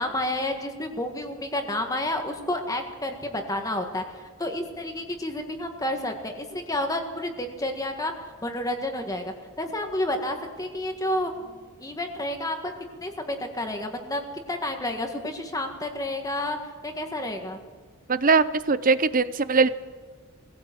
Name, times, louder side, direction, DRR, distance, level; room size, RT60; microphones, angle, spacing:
voice 1, 0.0-8.1 8.4-12.7 13.0-14.2 14.5-16.6 16.8-17.6, left 1 dB, 15° left, 4 dB, 1.7 m, -30 dB
voice 2, 18.1-19.7, right 4 dB, 40° right, 14 dB, 0.7 m, -21 dB
20.5 x 16.5 x 7.8 m, 1.5 s
head